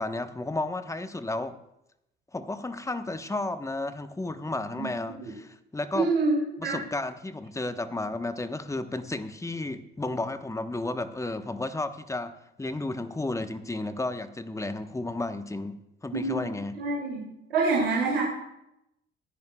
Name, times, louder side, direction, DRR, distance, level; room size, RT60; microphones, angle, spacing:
voice 1, 0.0-1.6 2.3-6.1 6.6-16.8, left 2 dB, 10° left, 10 dB, 1.0 m, -33 dB
voice 2, 5.9-6.7 16.1-17.2 17.5-18.2, right 3 dB, 85° right, -4 dB, 2.7 m, -26 dB
25.0 x 10.5 x 2.3 m, 0.84 s
hypercardioid pair, 55°, 29 cm